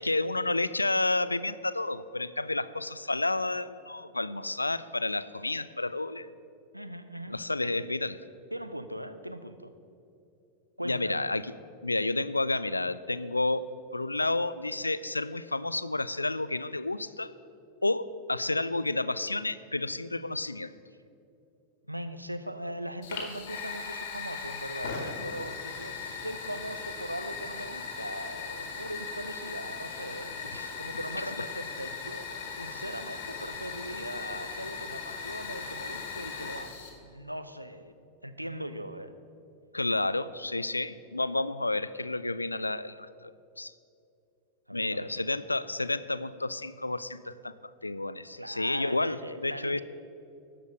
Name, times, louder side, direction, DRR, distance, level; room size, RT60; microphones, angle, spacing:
voice 1, 0.0-6.3 7.3-8.1 10.8-11.4 11.8-13.6 13.9-17.3 17.8-20.7 30.5-30.7 39.7-43.3 43.6-43.7 44.7-49.2 49.4-49.8, left 2 dB, 80° left, 16 dB, 0.3 m, -30 dB
voice 2, 6.7-7.7 8.5-9.7 10.8-11.2 21.8-39.2 44.7-45.1 48.4-49.8, right 1 dB, 90° right, 10 dB, 0.5 m, -40 dB
Fire, 23.0-36.9, left 5 dB, 55° left, 1.7 m, -38 dB
12.5 x 5.1 x 6.5 m, 2.6 s
figure-of-eight pair, 90°, 0 cm